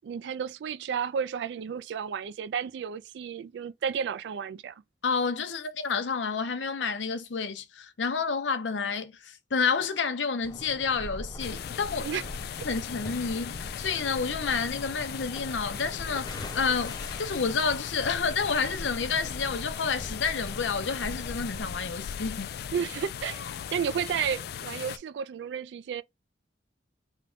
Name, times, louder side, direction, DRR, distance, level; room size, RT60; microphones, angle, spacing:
voice 1, 0.0-4.7 12.0-12.2 22.7-26.0, right 7 dB, 70° right, 0.3 m, -32 dB
voice 2, 5.0-12.1 12.6-22.5, left 5 dB, 90° left, 0.7 m, -30 dB
sound 1, 10.4-21.6, left 1 dB, 25° left, 0.6 m, -41 dB
sound 2, 11.4-25.0, left 9 dB, 60° left, 0.3 m, -38 dB
3.6 x 2.2 x 3.5 m
head